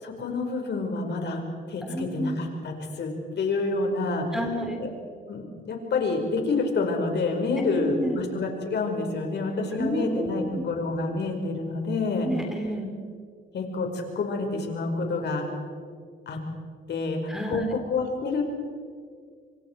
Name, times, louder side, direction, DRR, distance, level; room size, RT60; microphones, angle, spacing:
voice 1, 0.0-1.4 1.7-4.4 4.8-4.9 5.3-12.3 13.5-15.5 16.3-16.4 16.9-18.4, left 3 dB, 60° left, 3 dB, 5.2 m, -28 dB
voice 2, 1.8-2.4 4.3-4.8 7.6-8.2 9.7-10.6 12.2-12.9 17.3-17.6, equal, 5° right, 3 dB, 3.7 m, -30 dB
27.0 x 25.0 x 4.7 m, 2.1 s
cardioid pair, 90°, 20 cm